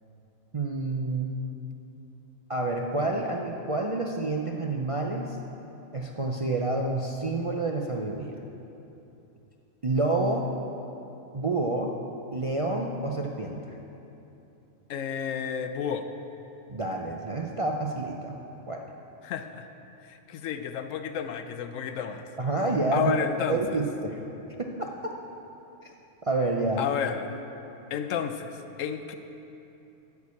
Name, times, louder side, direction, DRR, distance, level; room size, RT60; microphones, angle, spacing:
voice 1, 0.5-1.3 2.5-5.4 5.9-8.3 9.8-10.4 11.3-12.0 12.3-13.8 16.7-18.3 18.7-18.8 22.4-23.1 23.5-24.2 24.6-24.9 25.8-25.9 26.2-26.8, right 2 dB, 40° right, -1 dB, 0.5 m, -28 dB
voice 2, 14.9-16.1 19.2-19.7 20.1-22.2 22.9-23.8 26.8-27.4 27.9-28.5 28.8-29.1, left 8 dB, 75° left, 8 dB, 1.0 m, -31 dB
13.0 x 4.7 x 8.3 m, 2.9 s
omnidirectional pair, 1.4 m